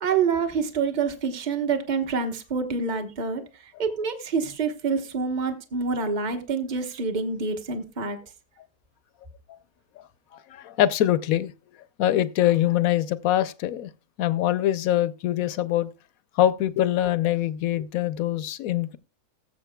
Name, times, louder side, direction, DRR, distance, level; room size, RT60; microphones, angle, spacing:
voice 1, 0.0-8.2, right 5 dB, 30° right, 1.1 m, -27 dB
voice 2, 10.3-11.5 12.0-13.9 14.2-15.9 16.4-19.0, left 12 dB, 70° left, 1.0 m, -23 dB
19.0 x 7.6 x 2.3 m
omnidirectional pair, 1.7 m